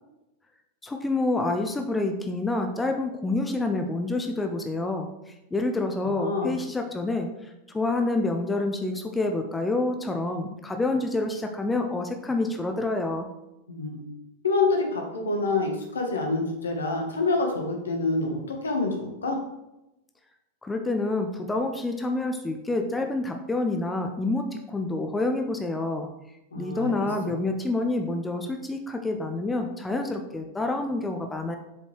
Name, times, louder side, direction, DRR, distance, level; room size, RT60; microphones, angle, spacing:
voice 1, 0.8-7.3 7.7-13.3 20.6-26.1 26.6-31.6, left 2 dB, 10° left, 4 dB, 0.6 m, -28 dB
voice 2, 6.2-6.5 13.7-14.1 14.4-19.4 26.5-27.0 27.2-27.3, left 3 dB, 70° left, 2 dB, 1.4 m, -27 dB
7.4 x 5.2 x 3.3 m, 0.93 s
figure-of-eight pair, 90°, 0 cm